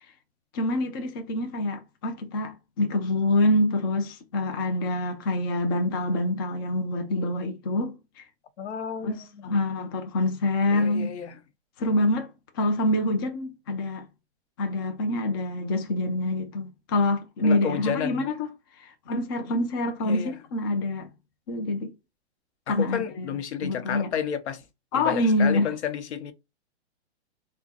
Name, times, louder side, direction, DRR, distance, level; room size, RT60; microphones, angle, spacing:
voice 1, 0.5-7.9 9.0-11.1 11.8-12.3 12.5-14.1 14.6-18.5 18.8-21.1 21.5-21.9 22.7-23.3 23.6-24.1 24.9-25.7, left 1 dB, 20° left, 0.4 m, -26 dB
voice 2, 8.6-9.6 10.7-11.4 17.4-18.3 20.0-20.3 22.7-24.6 24.9-26.3, left 8 dB, 75° left, 0.9 m, -32 dB
3.5 x 2.2 x 4.0 m
hypercardioid pair, 155°, 34 cm